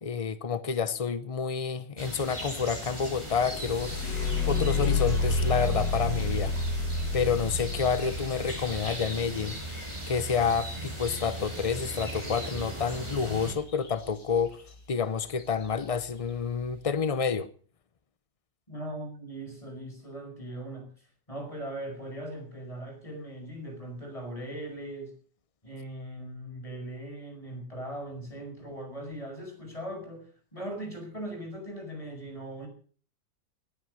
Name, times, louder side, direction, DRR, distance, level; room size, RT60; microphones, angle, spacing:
voice 1, 0.0-3.9 4.5-6.5 7.1-9.6 10.1-14.6 14.9-17.5, left 6 dB, 65° left, 0.3 m, -29 dB
sound 1, 2.0-13.5, right 1 dB, 15° right, 4.4 m, -38 dB
sound 2, 3.0-10.9 12.9-13.1 13.5-14.1 14.7-14.8 15.3-15.6, left 3 dB, 80° left, 3.2 m, -30 dB
voice 2, 18.7-20.9 21.3-25.1 25.6-32.7, right 1 dB, 20° left, 5.5 m, -39 dB
20.0 x 8.8 x 6.4 m
omnidirectional pair, 1.9 m